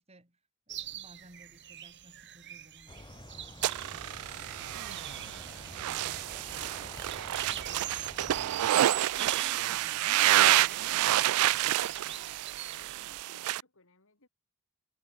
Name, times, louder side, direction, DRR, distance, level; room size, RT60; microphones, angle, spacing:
voice 1, 0.0-8.6 9.0-11.8, right 1 dB, 30° right, 6.1 m, -58 dB
sound 1, 0.7-13.2, right 12 dB, 55° right, 1.9 m, -43 dB
sound 2, 2.9-8.7, left 1 dB, 20° left, 2.4 m, -48 dB
sound 3, 3.6-13.6, right 14 dB, 80° right, 0.3 m, -28 dB
voice 2, 12.7-14.3, left 3 dB, 65° left, 4.3 m, -61 dB
head